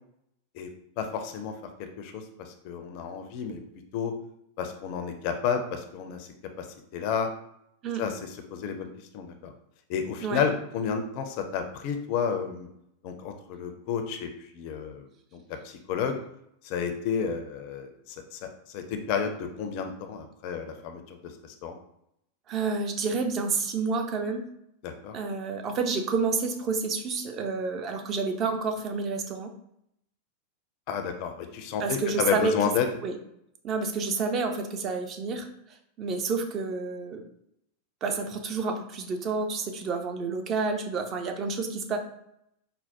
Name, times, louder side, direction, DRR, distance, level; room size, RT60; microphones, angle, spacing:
voice 1, 1.0-1.5 1.8-3.6 3.9-4.1 4.6-6.3 6.6-6.7 6.9-7.3 8.0-8.9 9.1-9.5 9.9-12.7 13.0-16.2 16.6-18.4 18.7-21.2 21.4-21.8 24.8-25.2 30.9-32.9, left 7 dB, 45° left, 6 dB, 0.4 m, -31 dB
voice 2, 22.5-24.4 25.1-29.5 31.8-32.5 33.0-33.2 33.6-35.5 36.0-37.2 38.0-42.0, right 4 dB, 30° right, 5 dB, 0.4 m, -29 dB
4.4 x 2.0 x 2.7 m, 0.75 s
figure-of-eight pair, 90°, 0 cm